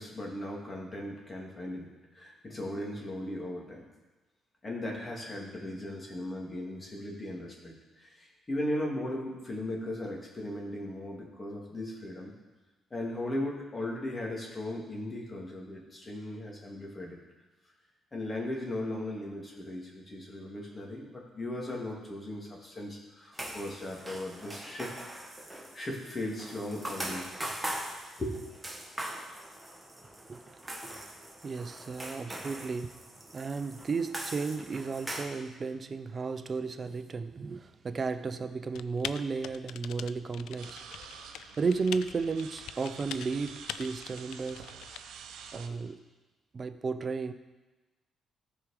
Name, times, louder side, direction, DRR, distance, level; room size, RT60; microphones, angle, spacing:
voice 1, 0.0-3.8 4.6-12.3 12.9-17.2 18.1-24.9 25.2-27.3 28.2-28.4, left 1 dB, 30° left, -2 dB, 2.4 m, -37 dB
sound 1, 23.3-35.3, right 1 dB, 10° right, 1.4 m, -41 dB
voice 2, 31.4-33.0 33.3-40.8 41.6-44.7 45.5-46.1 46.5-47.3, right 4 dB, 40° right, 10 dB, 0.5 m, -34 dB
Typing, 38.7-45.0, left 10 dB, 85° left, 0.3 m, -43 dB
sound 2, 40.6-45.7, right 7 dB, 80° right, 0.7 m, -48 dB
14.0 x 4.9 x 5.0 m, 1.2 s
cardioid pair, 90°, 0 cm